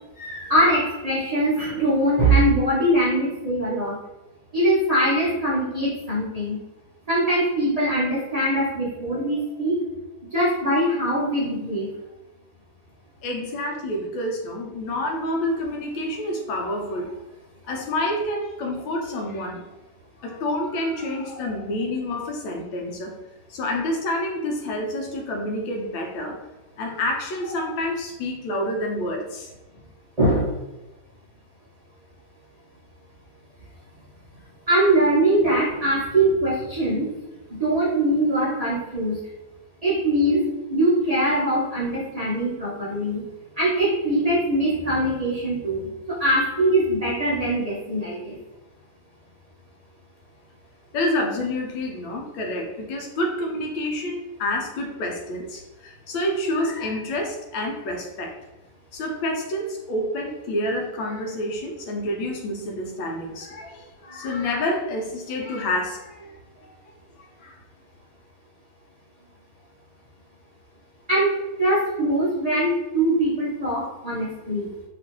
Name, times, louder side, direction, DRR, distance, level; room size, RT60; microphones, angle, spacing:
voice 1, 0.2-4.0 4.5-6.6 7.1-9.8 10.3-11.9 30.2-30.5 34.7-37.1 37.5-39.2 39.8-40.4 40.7-43.2 43.6-48.4 63.6-63.7 71.1-74.7, right 1 dB, 60° right, -9 dB, 0.4 m, -22 dB
voice 2, 13.2-17.1 17.7-19.6 20.2-23.2 23.5-26.4 26.8-29.5 50.9-58.3 58.9-66.7 67.2-67.6, left 1 dB, 90° left, 1 dB, 1.4 m, -28 dB
3.0 x 2.9 x 2.9 m, 1.0 s
omnidirectional pair, 2.1 m